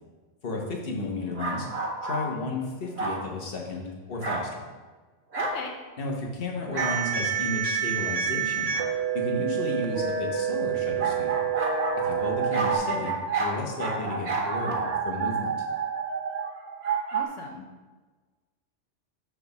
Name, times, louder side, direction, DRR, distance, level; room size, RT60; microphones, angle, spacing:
voice 1, 0.4-4.6 6.0-8.8 9.1-11.4 12.0-15.7, left 2 dB, 55° left, 0 dB, 1.3 m, -33 dB
sound 1, 1.3-2.3 3.0-3.3 4.2-4.5 5.3-5.6 6.7-7.0 8.7-8.9 11.0-17.2, right 4 dB, 60° right, 1.2 m, -29 dB
voice 2, 5.4-5.7 17.1-17.7, left 4 dB, 85° left, 2 dB, 1.0 m, -38 dB
sound 2, 6.8-12.8, right 8 dB, 80° right, 1.0 m, -28 dB
6.1 x 3.6 x 5.8 m, 1.3 s
omnidirectional pair, 1.2 m